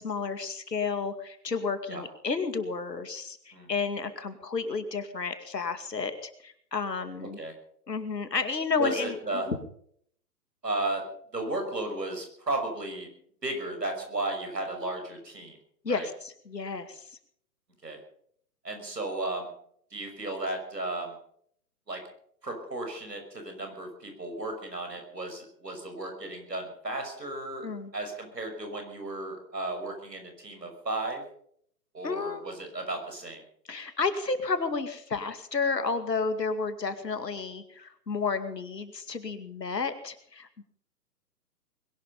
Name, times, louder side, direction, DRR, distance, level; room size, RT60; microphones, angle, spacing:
voice 1, 0.0-7.4 7.9-9.6 15.8-17.0 27.6-27.9 32.0-32.5 33.7-40.6, left 4 dB, 85° left, 9 dB, 2.4 m, -31 dB
voice 2, 8.8-9.5 10.6-11.0 11.3-13.1 13.4-15.6 15.9-16.1 17.8-18.0 18.6-19.5 19.9-21.1 21.9-22.0 22.4-31.2 31.9-33.4, right 2 dB, 90° right, 5 dB, 6.1 m, -34 dB
21.5 x 12.0 x 5.5 m, 0.65 s
figure-of-eight pair, 130°, 48 cm